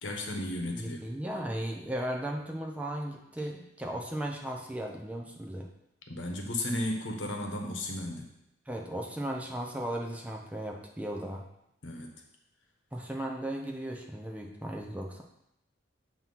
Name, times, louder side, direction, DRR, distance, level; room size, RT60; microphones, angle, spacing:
voice 1, 0.0-1.0 6.1-8.3 11.8-12.1, left 1 dB, 80° left, 2 dB, 1.1 m, -34 dB
voice 2, 0.8-5.7 8.7-11.4 12.9-15.2, right 1 dB, 10° right, 1 dB, 0.6 m, -36 dB
7.8 x 3.0 x 5.5 m, 0.82 s
head